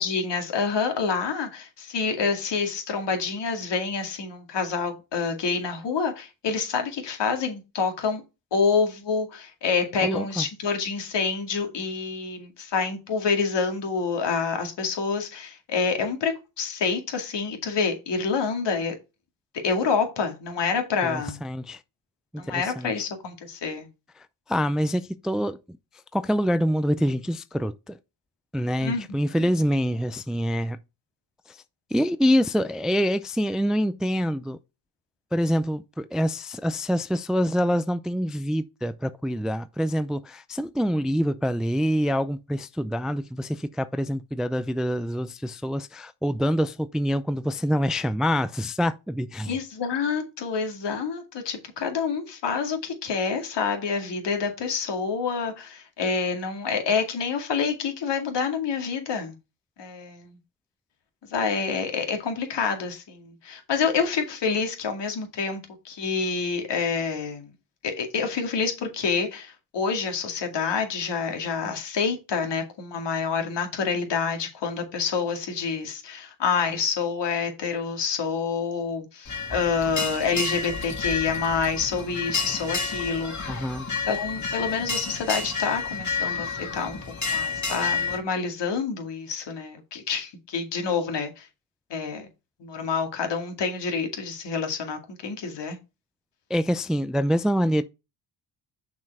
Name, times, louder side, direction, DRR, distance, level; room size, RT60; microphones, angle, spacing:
voice 1, 0.0-8.2 8.5-18.9 19.6-21.4 22.4-23.9 28.8-29.0 29.4-29.5 49.5-59.3 59.8-60.4 61.3-65.6 65.8-67.5 67.8-83.6 84.1-87.0 87.2-91.5 91.9-92.3 92.6-95.8, left 5 dB, 65° left, 2.3 m, -27 dB
voice 2, 10.0-10.5 21.0-21.8 22.4-22.9 24.2-25.6 26.1-28.0 28.5-30.8 31.5-31.6 31.9-34.6 35.3-49.6 83.5-83.9 96.5-97.8, equal, ahead, 0.4 m, -26 dB
sound 1, 79.2-88.2, left 4 dB, 40° left, 2.9 m, -30 dB
6.0 x 4.5 x 4.7 m
supercardioid pair, 60°, 46 cm